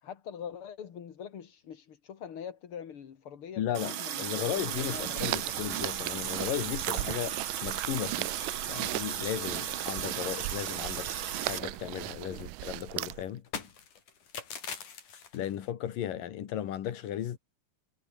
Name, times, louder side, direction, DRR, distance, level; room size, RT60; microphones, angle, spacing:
voice 1, 0.0-5.9 12.3-12.5, left 8 dB, 45° left, 2.4 m, -44 dB
voice 2, 3.6-8.3 8.7-11.1 11.4-13.4 15.3-17.4, left 11 dB, 85° left, 3.5 m, -35 dB
Water tap faucet, 3.7-11.6, right 10 dB, 55° right, 1.5 m, -36 dB
sound 1, 4.3-13.4, right 21 dB, 80° right, 2.1 m, -38 dB
sound 2, 7.0-7.6 7.9-8.0 8.3-8.5 8.8-9.3 9.6-11.1 11.3-15.7, left 7 dB, 65° left, 4.8 m, -45 dB
omnidirectional pair, 3.8 m